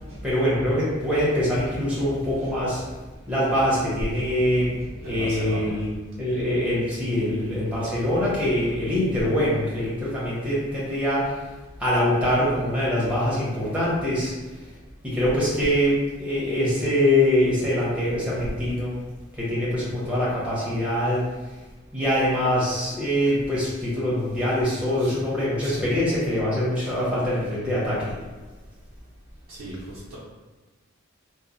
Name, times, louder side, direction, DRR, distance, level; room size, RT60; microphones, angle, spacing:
voice 1, 0.2-2.8 3.3-11.4 11.8-14.3 15.0-19.0 19.4-21.3 21.9-28.2, left 1 dB, 5° right, -8 dB, 0.8 m, -24 dB
voice 2, 1.7-2.6 3.3-3.8 4.1-5.8 6.3-6.5 6.9-7.0 7.4-7.5 7.9-8.1 8.4-8.8 23.2-23.3 25.0-25.2 25.6-25.9 29.5-30.2, equal, 80° right, -8 dB, 0.5 m, -38 dB
3.0 x 2.0 x 2.5 m, 1.2 s
head